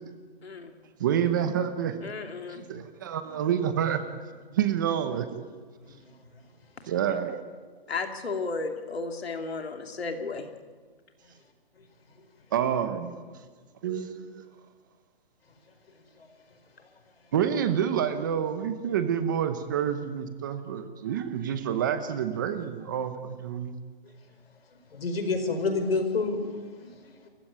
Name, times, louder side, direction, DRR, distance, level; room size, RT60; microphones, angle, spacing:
voice 1, 0.4-0.7 2.0-2.8 7.9-10.5, left 3 dB, 90° left, 5 dB, 2.8 m, -34 dB
voice 2, 1.0-2.0 2.5-4.0 4.5-5.5 6.9-7.4 12.5-13.1 13.8-14.4 17.3-23.7, right 9 dB, 20° right, 10 dB, 0.9 m, -28 dB
voice 3, 24.9-26.5 26.8-26.9, left 3 dB, 75° left, 7 dB, 4.8 m, -28 dB
28.5 x 15.0 x 9.7 m, 1.5 s
hypercardioid pair, 170°, 30 cm